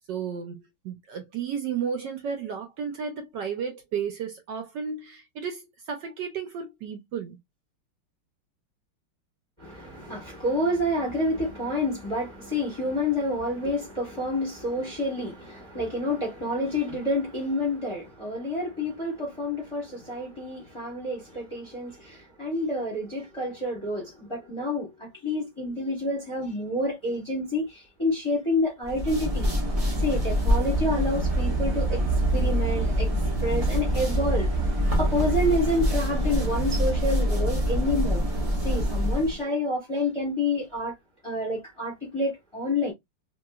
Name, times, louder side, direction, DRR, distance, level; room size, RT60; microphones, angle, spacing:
voice 1, 0.1-7.4, right 7 dB, 70° right, 1.1 m, -33 dB
voice 2, 9.6-29.5 30.0-32.0 32.3-33.1 33.4-38.2 38.6-40.9 41.2-42.9, left 1 dB, 20° left, 0.9 m, -28 dB
sound 1, 28.8-39.4, equal, 45° right, 0.4 m, -25 dB
3.0 x 2.9 x 2.3 m
omnidirectional pair, 2.2 m